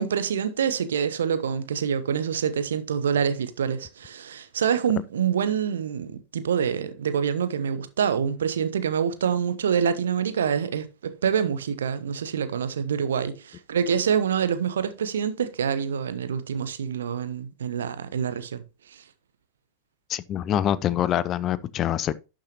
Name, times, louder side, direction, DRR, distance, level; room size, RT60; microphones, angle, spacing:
voice 1, 0.0-18.6, right 7 dB, 65° right, 0.9 m, -26 dB
voice 2, 20.1-22.2, left 11 dB, 30° left, 0.5 m, -25 dB
11.5 x 6.5 x 2.9 m
figure-of-eight pair, 90°, 0 cm